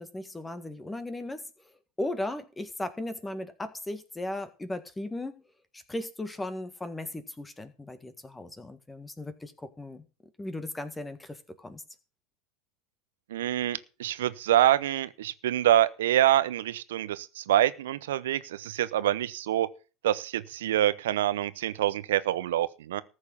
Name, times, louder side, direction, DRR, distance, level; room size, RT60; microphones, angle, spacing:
voice 1, 0.0-1.4 2.0-5.3 5.7-10.0 10.4-11.8, left 1 dB, 10° left, 1.7 m, -37 dB
voice 2, 13.3-19.7 20.0-23.0, right 12 dB, 80° right, 0.9 m, -26 dB
14.0 x 6.4 x 7.1 m
hypercardioid pair, 90°, 0 cm